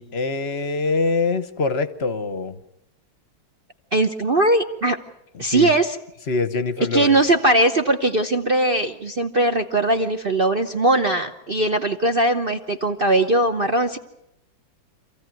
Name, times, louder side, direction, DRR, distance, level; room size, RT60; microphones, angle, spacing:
voice 1, 0.0-2.6 5.3-5.7 6.3-7.2, left 3 dB, 40° left, 12 dB, 1.0 m, -24 dB
voice 2, 3.9-5.0 5.4-6.0 6.9-14.0, right 1 dB, 40° right, 5 dB, 0.8 m, -20 dB
27.0 x 15.5 x 9.2 m, 0.87 s
omnidirectional pair, 2.2 m